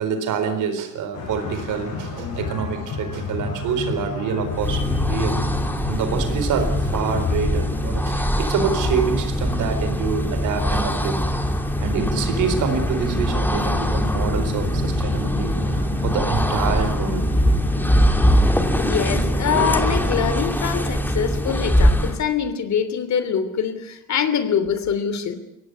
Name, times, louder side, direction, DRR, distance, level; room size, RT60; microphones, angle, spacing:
voice 1, 0.0-5.4 5.9-11.2 11.8-17.3, right 6 dB, 85° right, 8 dB, 4.3 m, -26 dB
sound 1, 1.1-18.6, left 5 dB, 80° left, 8.0 m, -32 dB
sound 2, 4.4-22.3, equal, 5° left, 2.8 m, -22 dB
sound 3, 11.8-20.2, left 2 dB, 35° left, 4.7 m, -29 dB
voice 2, 18.7-25.4, left 7 dB, 65° left, 11 dB, 3.2 m, -24 dB
23.0 x 17.5 x 9.8 m, 0.82 s
cardioid pair, 90°, 30 cm